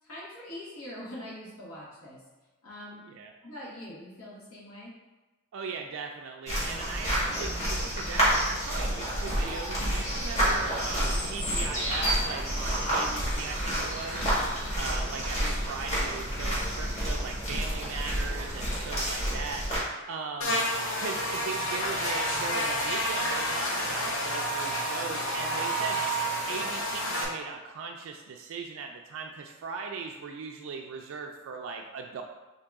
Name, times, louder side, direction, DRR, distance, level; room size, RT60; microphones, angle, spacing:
voice 1, 0.0-2.3 2.6-3.0 3.4-5.0, left 1 dB, 85° left, -6 dB, 1.3 m, -43 dB
voice 2, 5.5-14.3 14.7-19.7 20.0-20.6 21.0-26.0 26.5-32.2, right 5 dB, 65° right, 2 dB, 0.3 m, -38 dB
sound 1, 6.5-19.8, equal, 30° left, 1.4 m, -29 dB
sound 2, 10.6-19.2, right 1 dB, 15° right, 0.6 m, -47 dB
Buzz, 20.4-27.2, equal, 65° left, 0.8 m, -29 dB
3.8 x 2.7 x 3.5 m, 1.1 s
head